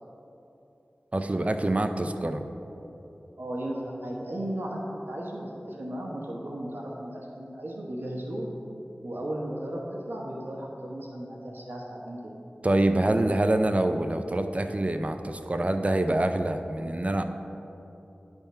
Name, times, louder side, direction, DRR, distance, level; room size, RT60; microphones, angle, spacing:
voice 1, 1.1-2.4 12.6-17.2, right 1 dB, 35° right, 7 dB, 0.5 m, -25 dB
voice 2, 3.4-8.5 9.0-9.8 10.1-12.2, right 1 dB, 70° right, -3 dB, 1.0 m, -35 dB
10.5 x 3.5 x 5.5 m, 2.9 s
wide cardioid pair, 40°, 4 cm